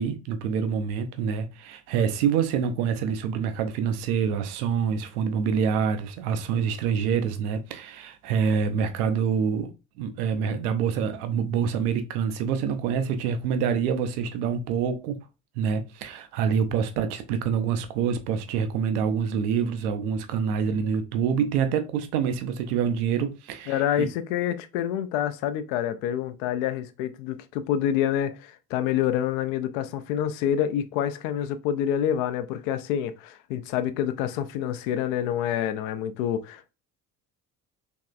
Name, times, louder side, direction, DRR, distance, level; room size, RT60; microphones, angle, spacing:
voice 1, 0.0-9.7 10.0-15.2 15.6-24.1, right 7 dB, 65° right, 0.6 m, -26 dB
voice 2, 23.7-36.7, left 10 dB, 55° left, 0.5 m, -27 dB
3.5 x 3.1 x 2.4 m
figure-of-eight pair, 55°, 50 cm